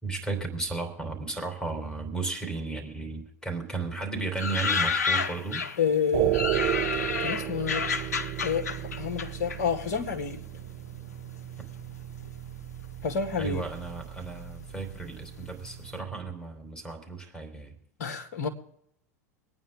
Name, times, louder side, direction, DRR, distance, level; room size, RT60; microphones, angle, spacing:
voice 1, 0.0-5.6 13.4-17.7, right 3 dB, 5° left, 3.8 m, -34 dB
sound 1, 4.4-5.9 6.3-10.2 10.5-11.3 12.0-12.5 12.8-12.9 13.1-15.4 15.7-15.9, left 5 dB, 70° left, 0.9 m, -30 dB
voice 2, 5.8-6.4 7.2-7.9 8.4-10.4 13.0-13.6 18.0-18.5, left 6 dB, 55° left, 2.0 m, -29 dB
sound 2, 6.1-16.3, right 15 dB, 40° right, 0.6 m, -34 dB
25.0 x 9.4 x 3.6 m
figure-of-eight pair, 85°, 9 cm